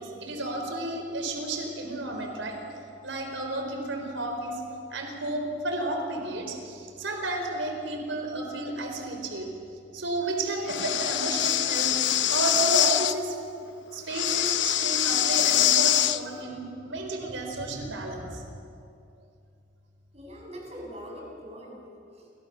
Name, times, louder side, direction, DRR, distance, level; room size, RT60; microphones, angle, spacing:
voice 1, 0.0-2.6 3.0-4.6 4.9-9.5 9.9-13.4 13.9-18.5, right 2 dB, 85° right, 3 dB, 4.5 m, -32 dB
Breathing, 10.7-13.1 14.1-16.2, left 12 dB, 75° left, 0.9 m, -24 dB
voice 2, 20.1-22.3, equal, 35° right, -1 dB, 7.2 m, -43 dB
29.5 x 25.0 x 7.1 m, 2.6 s
head